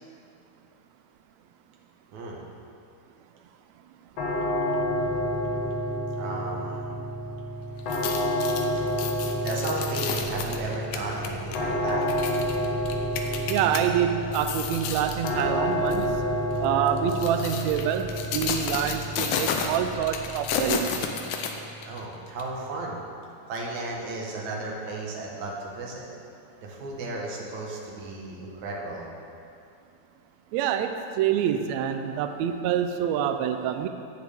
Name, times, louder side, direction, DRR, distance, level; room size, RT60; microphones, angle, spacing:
voice 1, 2.1-2.4 6.2-6.9 9.0-9.1 9.4-12.3 16.5-16.6 21.8-23.0 23.5-26.1 26.6-29.1, right 2 dB, 65° right, -2 dB, 2.7 m, -34 dB
sound 1, 4.2-23.1, equal, 60° left, 2.1 m, -30 dB
sound 2, 7.8-13.8 14.2-15.4 15.9-16.1 16.9-22.0 22.4-22.5, left 6 dB, 90° left, 2.3 m, -32 dB
sound 3, 9.7-20.9, right 1 dB, 30° right, 2.3 m, -45 dB
voice 2, 13.5-16.1 16.6-21.1 30.5-33.9, right 9 dB, 85° right, 7 dB, 1.6 m, -26 dB
17.0 x 6.9 x 3.6 m, 2.6 s
omnidirectional pair, 3.7 m